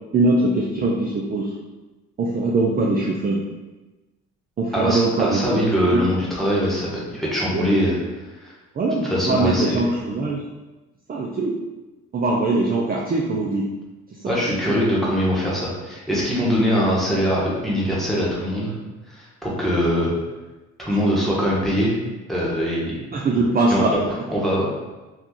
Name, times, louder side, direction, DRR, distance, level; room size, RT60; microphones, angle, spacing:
voice 1, 0.1-1.5 2.2-3.4 4.6-5.4 5.9-6.0 7.5-7.7 8.8-10.4 11.1-11.6 12.1-13.7 14.2-14.8 23.1-23.9, right 2 dB, 30° right, -3 dB, 0.4 m, -22 dB
voice 2, 4.7-8.0 8.4-8.5 9.0-9.8 14.2-18.7 19.1-20.1 20.8-21.9 22.3-23.0 23.7-24.7, equal, ahead, -6 dB, 1.2 m, -22 dB
2.9 x 2.4 x 3.7 m, 1.1 s
cardioid pair, 90°, 30 cm